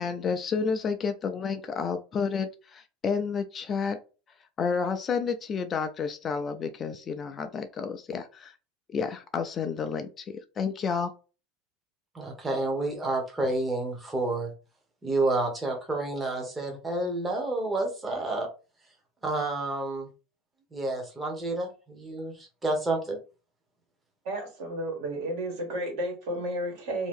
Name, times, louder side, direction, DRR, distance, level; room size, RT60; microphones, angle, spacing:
voice 1, 0.0-4.0 4.6-8.5 8.9-11.1, left 5 dB, 25° left, 0.3 m, -30 dB
voice 2, 12.1-14.5 15.0-18.5 19.2-20.1 20.7-23.2, right 2 dB, 10° right, 0.8 m, -29 dB
voice 3, 24.2-27.1, right 1 dB, 65° right, 1.4 m, -32 dB
2.7 x 2.7 x 3.5 m
supercardioid pair, 160°, 0 cm